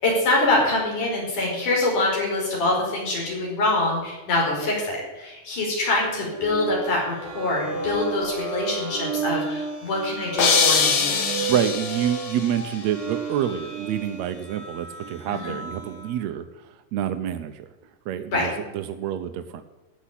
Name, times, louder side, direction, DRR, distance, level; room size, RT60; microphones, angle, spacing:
voice 1, 0.0-11.2 15.3-15.6 18.3-18.5, left 2 dB, 70° left, -3 dB, 6.5 m, -24 dB
sound 1, 6.0-16.2, right 5 dB, 55° right, 4.3 m, -33 dB
sound 2, 10.4-12.5, left 5 dB, 55° left, 2.4 m, -22 dB
voice 2, 11.5-17.7 18.1-19.6, right 10 dB, 75° right, 8 dB, 1.7 m, -28 dB
14.5 x 7.3 x 10.0 m, 1.1 s
omnidirectional pair, 3.7 m